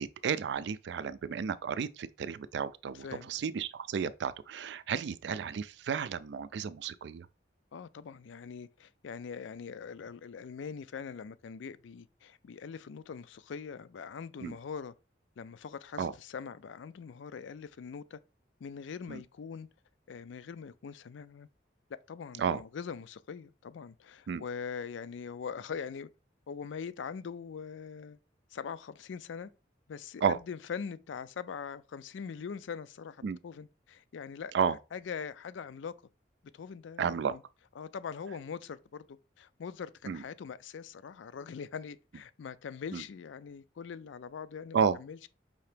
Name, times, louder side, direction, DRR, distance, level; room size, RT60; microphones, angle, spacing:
voice 1, 0.0-7.3 14.4-14.6 16.0-16.1 19.1-19.2 22.4-22.6 24.3-24.4 30.2-30.4 33.2-33.4 34.5-34.8 37.0-37.4 40.1-40.2 42.9-43.0 44.7-45.0, right 6 dB, 70° right, 0.3 m, -32 dB
voice 2, 2.9-3.3 7.7-14.9 15.4-18.2 18.6-19.7 20.1-21.5 21.9-26.1 26.5-28.2 28.5-29.5 29.9-34.5 34.9-35.9 36.5-37.4 37.8-45.3, left 6 dB, 85° left, 0.4 m, -42 dB
5.4 x 2.9 x 3.3 m
head